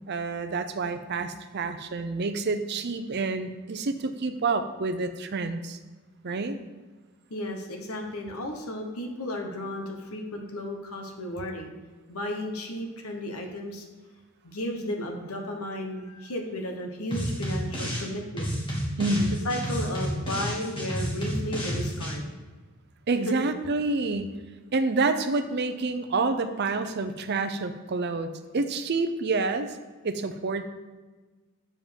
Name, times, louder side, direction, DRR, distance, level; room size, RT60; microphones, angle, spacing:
voice 1, 0.1-5.8 6.2-6.6 19.0-19.4 23.1-24.3 24.7-29.8 30.0-30.6, right 3 dB, 50° right, 9 dB, 0.6 m, -28 dB
voice 2, 7.3-11.7 12.1-13.8 14.4-18.5 19.4-22.3 23.3-23.4, left 1 dB, 80° left, 3 dB, 1.2 m, -34 dB
sound 1, 17.1-18.1 18.4-22.1, equal, 25° left, 1.9 m, -30 dB
7.1 x 5.1 x 5.1 m, 1.3 s
head